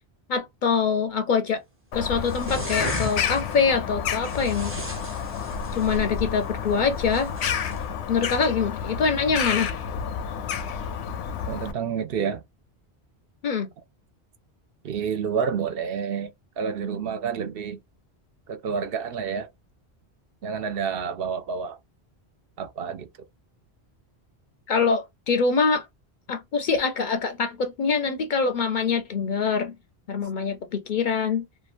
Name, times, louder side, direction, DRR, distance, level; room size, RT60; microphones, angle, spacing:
voice 1, 0.3-1.6 1.9-4.7 5.7-7.3 8.1-9.7 13.4-13.7 24.7-25.9 26.3-29.7 30.1-31.4, left 5 dB, 60° left, 0.6 m, -24 dB
Bird vocalization bird call bird song, 1.9-11.7, left 7 dB, 85° left, 0.9 m, -30 dB
sound 1, 2.2-3.5 4.2-6.0 7.1-7.8, equal, 15° right, 0.6 m, -36 dB
voice 2, 11.5-12.4 14.8-17.8 18.5-19.5 20.4-21.8 22.6-23.1, right 6 dB, 65° right, 0.7 m, -29 dB
2.9 x 2.2 x 2.4 m
omnidirectional pair, 1.1 m